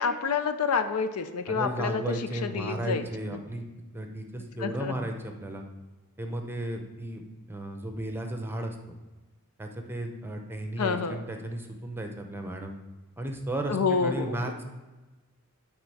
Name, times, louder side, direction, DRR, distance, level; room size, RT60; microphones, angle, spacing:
voice 1, 0.0-2.1 2.4-3.4 4.6-4.9 10.8-11.2 13.7-14.4, left 5 dB, 85° left, 10 dB, 0.6 m, -28 dB
voice 2, 1.5-3.6 3.9-5.6 6.2-7.2 7.5-9.0 9.6-12.8 13.2-14.6, right 1 dB, 10° right, 4 dB, 0.7 m, -34 dB
9.5 x 3.7 x 4.7 m, 1.2 s
head